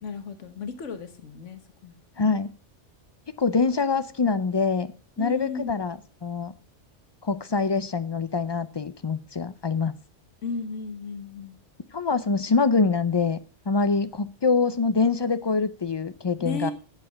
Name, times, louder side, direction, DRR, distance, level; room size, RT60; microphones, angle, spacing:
voice 1, 0.0-2.4 5.2-5.8 10.4-11.6 16.4-16.7, left 4 dB, 85° left, 9 dB, 1.5 m, -35 dB
voice 2, 2.2-2.5 3.4-4.9 5.2-6.5 7.2-9.9 11.9-13.4 13.7-16.7, left 4 dB, 45° left, 13 dB, 0.3 m, -24 dB
8.7 x 7.4 x 7.1 m, 0.37 s
omnidirectional pair, 1.2 m